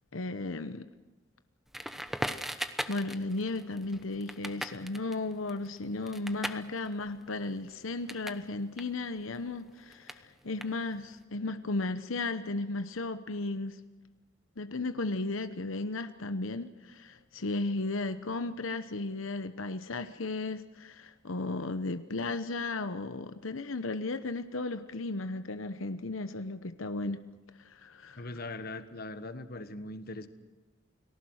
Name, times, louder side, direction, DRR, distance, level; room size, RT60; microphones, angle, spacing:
voice 1, 0.1-0.9 2.9-13.8 14.6-27.2 27.6-28.3, left 2 dB, 90° left, 10 dB, 1.0 m, -35 dB
Crackle, 1.7-8.4 8.7-11.2, equal, ahead, 1.0 m, -40 dB
voice 2, 28.2-30.3, left 2 dB, 50° left, 10 dB, 1.4 m, -40 dB
29.5 x 19.5 x 6.4 m, 1.2 s
head